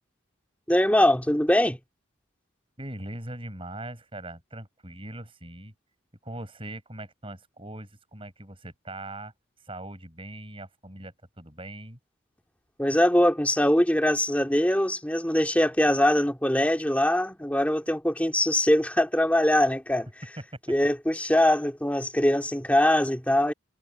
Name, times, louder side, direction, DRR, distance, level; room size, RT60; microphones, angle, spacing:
voice 1, 0.7-1.8 12.8-20.1 20.7-23.5, left 1 dB, 5° left, 2.3 m, -22 dB
voice 2, 2.8-5.7 6.2-9.3 9.6-12.0, right 1 dB, 25° right, 7.7 m, -40 dB
head